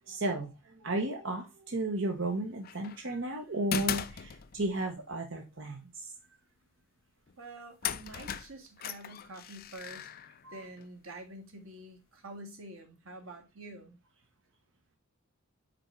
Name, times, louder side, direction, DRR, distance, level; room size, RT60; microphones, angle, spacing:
voice 1, 0.1-6.1 10.4-10.6, right 1 dB, 60° right, 1.0 m, -34 dB
sound 1, 2.6-3.0 3.7-4.8 7.3-7.4 7.8-10.9, left 8 dB, 45° left, 0.4 m, -37 dB
voice 2, 7.4-10.1 10.5-14.0, right 2 dB, 90° right, 1.7 m, -47 dB
5.2 x 4.4 x 4.5 m
head